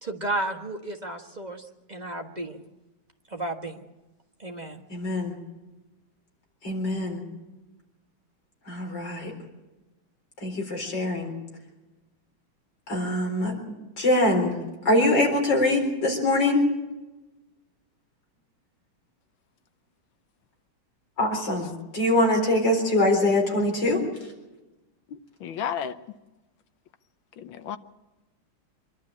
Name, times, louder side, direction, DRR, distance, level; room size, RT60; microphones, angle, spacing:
voice 1, 0.0-2.6 3.3-3.8 4.4-4.8, right 2 dB, 25° right, 3 dB, 1.3 m, -33 dB
voice 2, 4.9-5.3 6.6-7.2 8.7-9.3 10.4-11.3 12.9-13.5 14.0-14.5 14.8-16.6 21.2-24.0, left 1 dB, 60° left, 1 dB, 4.8 m, -23 dB
voice 3, 25.1-26.0 27.4-27.8, left 8 dB, 75° left, 10 dB, 1.7 m, -33 dB
25.5 x 12.0 x 8.6 m, 1.1 s
omnidirectional pair, 2.2 m